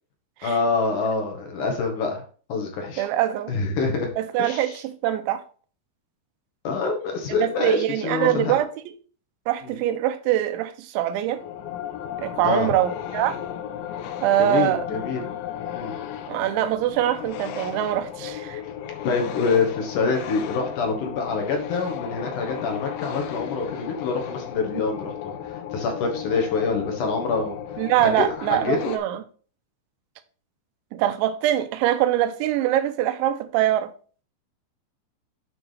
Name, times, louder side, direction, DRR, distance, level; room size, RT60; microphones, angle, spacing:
voice 1, 0.4-2.2 2.5-3.1 3.5-4.1 4.4-4.7 6.6-8.6 9.7-9.8 12.4-12.7 14.4-15.2 15.7-16.0 19.0-27.6 28.0-28.3 28.5-28.9, left 4 dB, 60° left, 2.3 m, -26 dB
voice 2, 3.0-3.5 4.2-5.4 7.4-8.9 9.5-11.4 12.2-13.4 14.2-14.8 16.3-18.6 27.8-29.2 30.9-33.9, right 12 dB, 85° right, 3.1 m, -23 dB
sound 1, 11.3-29.0, left 9 dB, 85° left, 3.2 m, -35 dB
9.4 x 3.6 x 5.6 m
omnidirectional pair, 5.3 m